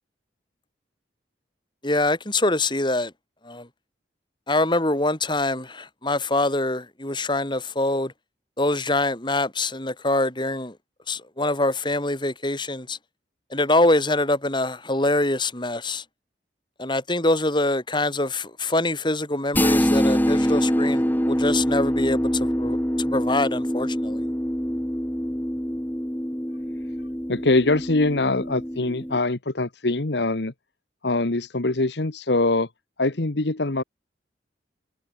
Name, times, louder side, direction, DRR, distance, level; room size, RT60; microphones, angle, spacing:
voice 1, 1.8-3.1 3.4-3.7 4.5-8.1 8.6-10.8 11.1-13.0 13.5-16.0 16.8-24.2, left 2 dB, 25° left, 4.1 m, -24 dB
sound 1, 19.5-29.2, equal, 10° left, 2.2 m, -25 dB
voice 2, 27.3-30.5 31.0-32.7 33.0-33.8, left 2 dB, 70° left, 1.4 m, -23 dB
head